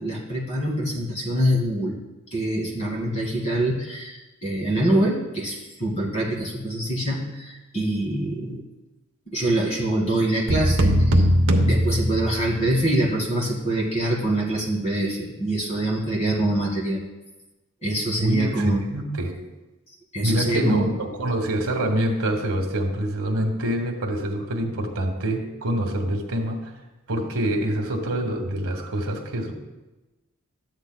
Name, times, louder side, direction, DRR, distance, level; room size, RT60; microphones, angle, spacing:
voice 1, 0.0-2.0 2.3-8.6 9.3-11.3 11.6-17.0 17.8-18.8 20.1-20.9, right 1 dB, 30° left, -2 dB, 2.0 m, -25 dB
sound 1, 10.5-12.7, equal, 60° right, 0.8 m, -20 dB
voice 2, 18.2-19.3 20.2-26.7 27.1-29.5, right 1 dB, 80° right, 2 dB, 1.3 m, -26 dB
13.0 x 8.9 x 2.2 m, 1.1 s
head